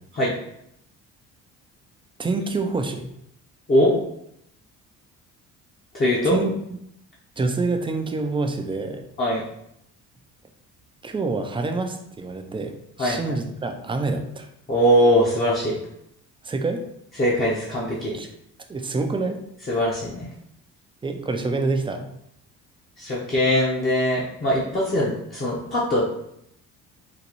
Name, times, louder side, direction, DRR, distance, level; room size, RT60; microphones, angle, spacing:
voice 1, 2.2-3.1 6.2-6.5 7.4-9.1 11.0-14.5 16.4-16.8 18.1-18.3 18.7-19.4 21.0-22.1, right 3 dB, 15° right, 5 dB, 0.4 m, -26 dB
voice 2, 5.9-6.4 9.2-9.4 13.0-13.3 14.7-15.8 17.2-18.1 19.7-20.3 23.0-26.0, equal, 25° left, -5 dB, 0.8 m, -21 dB
3.9 x 2.2 x 3.0 m, 0.76 s
cardioid pair, 90°, 34 cm